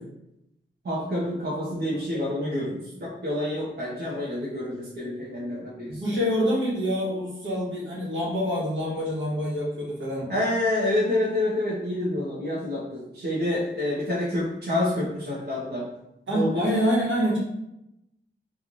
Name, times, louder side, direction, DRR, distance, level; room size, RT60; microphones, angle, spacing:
voice 1, 0.8-6.0 10.3-15.9 16.3-16.6, left 1 dB, 55° right, -7 dB, 0.9 m, -28 dB
voice 2, 5.9-10.3 16.3-17.4, equal, 70° right, -5 dB, 1.3 m, -26 dB
3.1 x 2.5 x 3.9 m, 0.84 s
wide cardioid pair, 120°, 20 cm